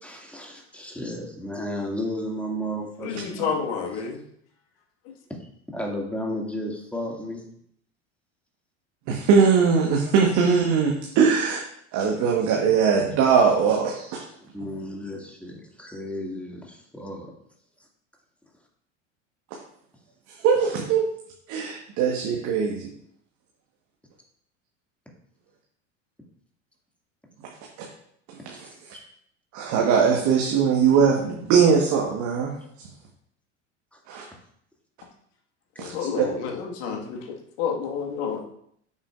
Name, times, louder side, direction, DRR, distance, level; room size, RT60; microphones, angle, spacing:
voice 1, 0.0-3.5 5.4-7.5 14.4-17.4 28.9-29.0 33.9-34.0, equal, 5° left, -1 dB, 2.1 m, -33 dB
voice 2, 3.0-4.2 5.1-5.2 35.8-38.4, left 6 dB, 60° left, 1 dB, 1.8 m, -30 dB
voice 3, 9.1-11.6 11.9-14.2 20.3-21.0 21.5-22.9 28.4-28.7 29.5-32.5 34.1-34.2 35.8-35.9 36.2-36.3, right 6 dB, 50° right, 0 dB, 1.4 m, -21 dB
8.7 x 7.2 x 2.5 m, 0.68 s
figure-of-eight pair, 75°, 37 cm